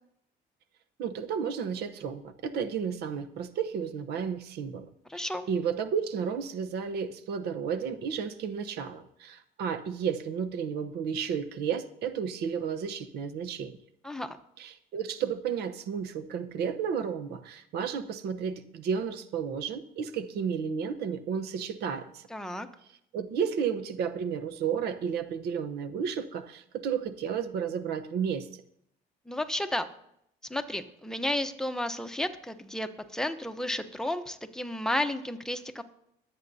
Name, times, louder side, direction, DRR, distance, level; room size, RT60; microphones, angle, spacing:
voice 1, 1.0-4.9 5.1-13.7 14.6-22.2 23.1-28.5, right 7 dB, 75° right, 10 dB, 0.9 m, -32 dB
voice 2, 5.1-5.5 14.0-14.4 22.3-22.7 29.3-29.9 30.5-35.8, left 1 dB, 5° left, 7 dB, 0.8 m, -32 dB
21.5 x 8.2 x 2.7 m, 0.75 s
cardioid pair, 110°, 17 cm